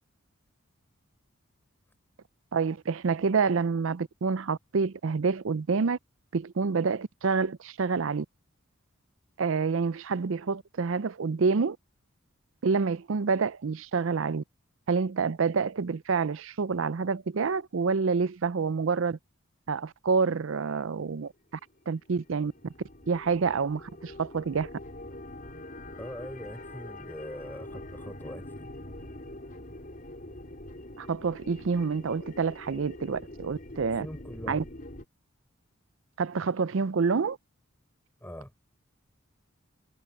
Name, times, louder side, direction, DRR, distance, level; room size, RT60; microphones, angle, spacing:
voice 1, 2.5-6.0 6.3-8.3 9.4-11.8 12.6-14.4 14.9-19.2 19.7-21.3 21.9-22.7 23.1-24.7 31.0-34.1 34.5-34.6 36.2-37.4, right 5 dB, 65° right, 0.5 m, -28 dB
sound 1, 21.6-35.0, left 1 dB, 40° left, 4.8 m, -44 dB
voice 2, 26.0-28.7 34.0-34.6 38.2-38.5, equal, 10° left, 6.2 m, -42 dB
head